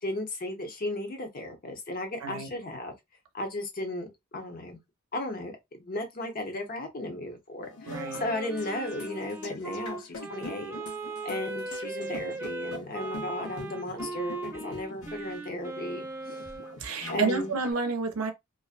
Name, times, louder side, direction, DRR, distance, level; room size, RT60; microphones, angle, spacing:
voice 1, 0.0-2.9 3.3-4.8 5.1-10.7 11.2-16.4 17.1-17.5, left 1 dB, 45° left, 0.7 m, -35 dB
sound 1, 7.6-17.7, left 2 dB, 85° left, 0.9 m, -44 dB
Wind instrument woodwind instrument, 7.9-16.8, right 2 dB, 10° right, 0.3 m, -38 dB
voice 2, 7.9-8.2 16.8-18.3, right 4 dB, 80° right, 0.6 m, -30 dB
2.5 x 2.1 x 2.4 m
head